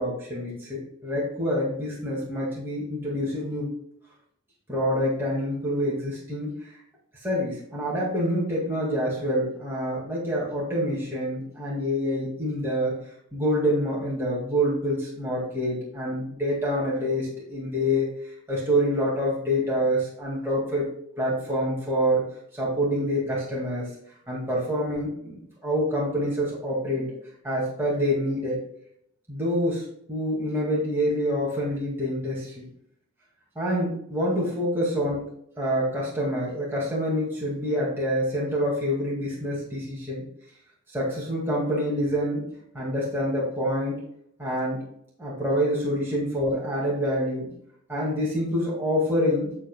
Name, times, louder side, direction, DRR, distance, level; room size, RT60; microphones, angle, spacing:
voice 1, 0.0-3.7 4.7-6.8 7.2-13.0 13.3-20.9 21.2-22.2 22.5-23.9 24.3-27.1 27.4-28.6 29.3-32.7 33.6-35.2 35.6-40.2 40.9-42.5 42.7-44.0 44.4-44.8 45.2-47.5 47.9-49.5, equal, 10° right, -6 dB, 2.2 m, -26 dB
8.2 x 7.5 x 2.3 m, 0.71 s
head